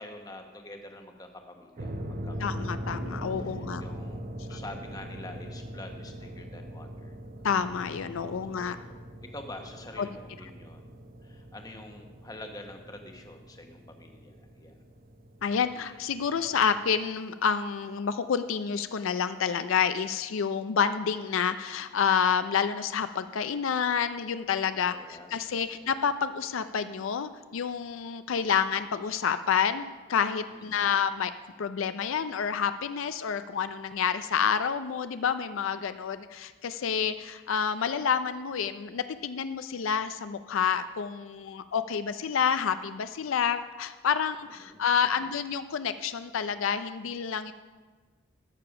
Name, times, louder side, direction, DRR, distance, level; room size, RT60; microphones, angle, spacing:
voice 1, 0.0-2.4 3.2-7.2 8.6-8.9 9.3-10.9 11.2-14.7 24.9-25.9 30.5-31.0 44.6-44.9, left 1 dB, 20° left, 4 dB, 1.0 m, -46 dB
sound 1, 1.8-17.0, equal, 45° right, 0.9 m, -41 dB
voice 2, 2.4-3.8 4.5-4.6 7.4-8.8 10.0-10.1 15.4-31.3 31.6-47.5, left 7 dB, 75° left, 11 dB, 0.4 m, -29 dB
14.0 x 6.8 x 5.9 m, 1.4 s
head